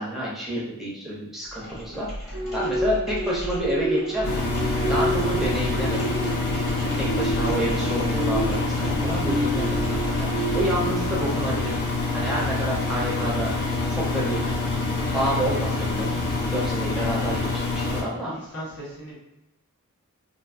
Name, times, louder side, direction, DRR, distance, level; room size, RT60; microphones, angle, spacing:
voice 1, 0.0-4.4 4.7-6.0 6.8-11.8 12.1-13.5 13.9-14.7 15.1-18.3, equal, ahead, -6 dB, 0.5 m, -29 dB
sound 1, 1.4-10.8, equal, 30° left, 1.3 m, -36 dB
sound 2, 2.3-12.2 12.7-12.9, right 1 dB, 55° right, 0.4 m, -30 dB
Engine, 4.2-18.0, left 3 dB, 50° left, 0.5 m, -26 dB
voice 2, 17.8-19.2, equal, 80° left, -7 dB, 1.2 m, -39 dB
2.6 x 2.6 x 2.3 m, 0.90 s
head